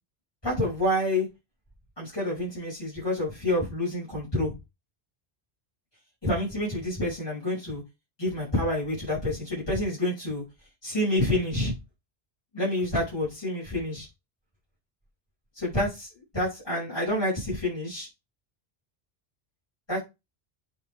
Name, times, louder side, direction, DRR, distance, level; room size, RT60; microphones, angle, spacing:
voice 1, 0.4-1.3 2.0-4.5 6.2-7.8 8.2-10.4 10.8-11.7 12.5-14.1 15.5-16.1 16.3-18.1 19.9-20.0, left 1 dB, 25° left, -8 dB, 5.7 m, -28 dB
8.7 x 4.5 x 3.5 m, 0.23 s
omnidirectional pair, 1.1 m